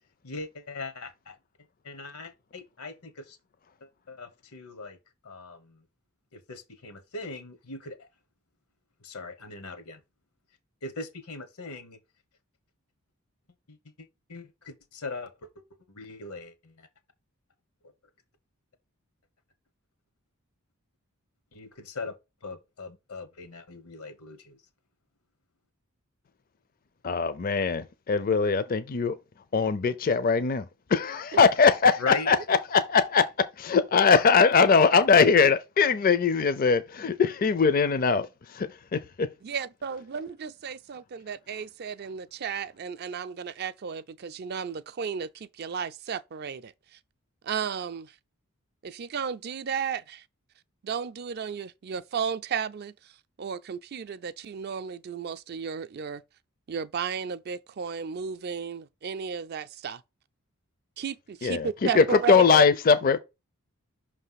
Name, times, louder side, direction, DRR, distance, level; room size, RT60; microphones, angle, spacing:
voice 1, 0.2-1.4 1.8-3.4 3.8-5.0 5.2-5.8 6.3-8.1 9.0-10.0 10.8-12.0 13.7-16.9 21.5-22.2 22.4-24.6 32.0-32.4, left 3 dB, 85° left, 1.2 m, -40 dB
voice 2, 27.0-29.2 29.5-33.2 33.6-39.0 61.4-63.2, left 5 dB, 40° left, 0.5 m, -21 dB
voice 3, 39.4-46.7 47.4-48.1 48.8-50.2 50.8-52.9 53.4-56.2 56.7-60.0 61.0-62.6, right 6 dB, 45° right, 0.4 m, -34 dB
5.7 x 3.3 x 5.6 m
head